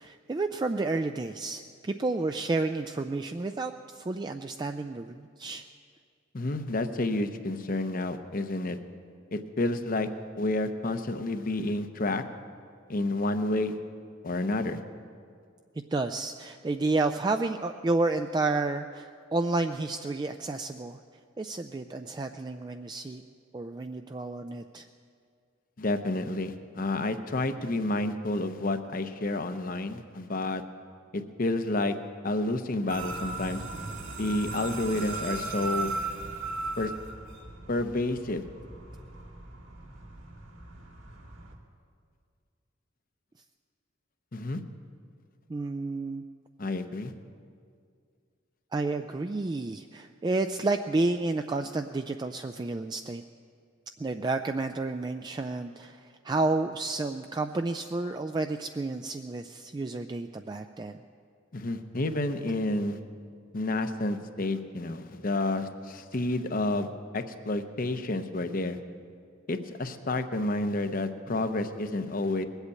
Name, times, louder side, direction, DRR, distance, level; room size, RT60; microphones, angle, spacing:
voice 1, 0.0-5.6 15.9-21.0 21.4-23.2 23.5-24.8 45.5-46.2 48.7-53.2 54.0-61.0, right 3 dB, 20° right, 6 dB, 0.3 m, -31 dB
voice 2, 6.3-8.8 9.3-10.1 10.4-12.2 12.9-13.8 14.2-14.8 25.8-30.6 31.1-32.0 32.2-33.6 34.2-36.0 36.8-36.9 37.7-38.5 44.3-44.6 46.6-47.1 61.5-63.0 63.5-66.9 67.1-68.8 69.5-72.5, left 2 dB, 45° left, 9 dB, 0.8 m, -30 dB
sound 1, 32.9-41.5, right 3 dB, 85° right, 2.1 m, -37 dB
20.5 x 8.1 x 8.3 m, 2.2 s
head